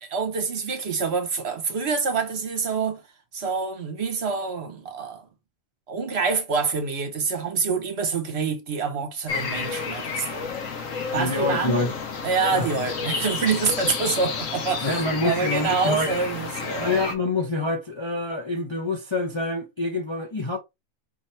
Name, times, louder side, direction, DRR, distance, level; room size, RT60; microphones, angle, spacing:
voice 1, 0.0-3.0 3.3-5.3 5.9-10.5 11.1-11.8 12.2-17.0, right 5 dB, 55° right, 1.1 m, -26 dB
sound 1, 9.3-17.2, left 5 dB, 75° left, 1.3 m, -31 dB
voice 2, 11.1-12.0 12.5-12.8 14.8-16.1 16.8-20.6, left 2 dB, 30° left, 0.6 m, -26 dB
5.5 x 2.9 x 3.2 m
omnidirectional pair, 1.4 m